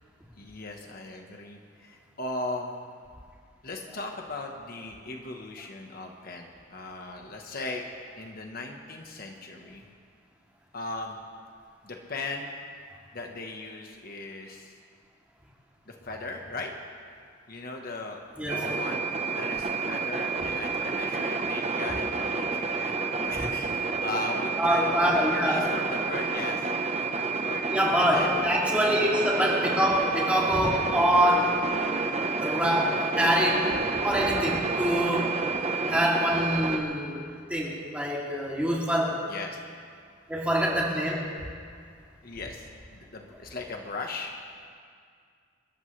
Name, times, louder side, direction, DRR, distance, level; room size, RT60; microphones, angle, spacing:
voice 1, 0.3-2.7 3.6-7.8 8.2-9.8 10.7-11.2 11.8-12.6 13.1-14.7 15.9-16.7 17.5-19.1 19.3-26.7 27.1-27.6 28.0-29.3 39.3-39.6 42.2-44.4, left 2 dB, 50° left, 2 dB, 1.3 m, -38 dB
sound 1, 18.5-36.8, right 4 dB, 35° right, 1.0 m, -29 dB
voice 2, 24.6-25.7 27.7-31.6 32.4-33.7 34.0-35.4 35.9-37.2 37.5-39.2 40.3-41.2, equal, 5° right, -5 dB, 2.9 m, -25 dB
28.0 x 14.0 x 3.3 m, 2.2 s
head